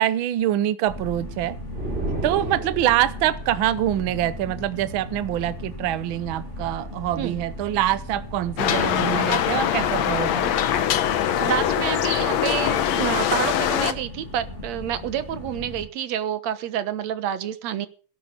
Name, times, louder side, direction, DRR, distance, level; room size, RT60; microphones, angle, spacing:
voice 1, 0.0-1.6 2.2-10.5, right 13 dB, 90° right, 15 dB, 1.1 m, -25 dB
sound 1, 0.8-15.9, left 1 dB, 25° left, 2.5 m, -37 dB
sound 2, 1.7-3.3, right 2 dB, 20° right, 3.8 m, -31 dB
sound 3, 8.6-13.9, left 10 dB, 70° left, 2.2 m, -23 dB
voice 2, 11.4-17.9, right 10 dB, 70° right, 12 dB, 2.3 m, -28 dB
17.5 x 10.5 x 5.2 m, 0.39 s
omnidirectional pair, 3.4 m